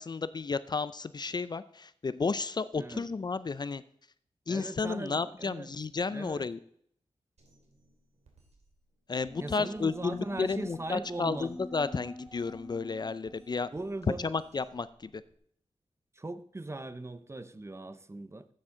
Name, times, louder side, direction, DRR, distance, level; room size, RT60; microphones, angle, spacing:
voice 1, 0.0-3.8 4.5-6.6 9.1-13.7 14.2-15.2, left 4 dB, 40° left, 0.4 m, -32 dB
voice 2, 4.5-5.7 6.1-6.5 9.4-11.5 13.7-14.3 16.1-18.5, right 2 dB, 25° right, 0.7 m, -39 dB
Drum kit, 7.4-15.4, right 2 dB, 90° right, 2.7 m, -64 dB
sound 1, 9.3-14.5, left 1 dB, 5° left, 1.8 m, -47 dB
13.0 x 8.7 x 3.8 m
wide cardioid pair, 80°, 11 cm